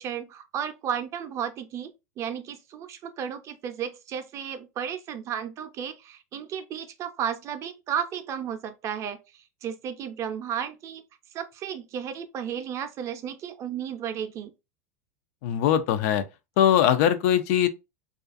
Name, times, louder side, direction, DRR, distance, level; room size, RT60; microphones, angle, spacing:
voice 1, 0.0-1.9 2.2-11.0 11.3-14.5, right 8 dB, 35° right, 0.5 m, -33 dB
voice 2, 15.4-16.2 16.6-17.7, left 10 dB, 60° left, 0.4 m, -21 dB
2.4 x 2.3 x 2.4 m
supercardioid pair, 120°, 9 cm